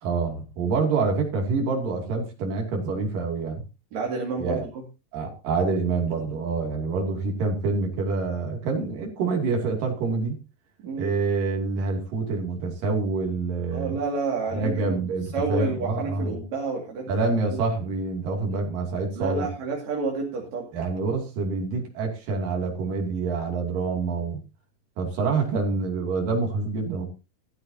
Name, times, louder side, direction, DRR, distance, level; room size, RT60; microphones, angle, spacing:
voice 1, 0.0-3.6 4.4-4.6 5.1-10.4 11.0-14.0 14.5-16.4 17.1-19.5 20.7-24.4 25.0-27.1, right 4 dB, 70° right, 1 dB, 4.4 m, -26 dB
voice 2, 3.9-4.6 10.8-11.1 13.7-15.0 15.3-17.1 19.2-20.7, right 4 dB, 55° right, 0 dB, 3.5 m, -29 dB
14.0 x 14.0 x 2.8 m, 0.29 s
omnidirectional pair, 4.0 m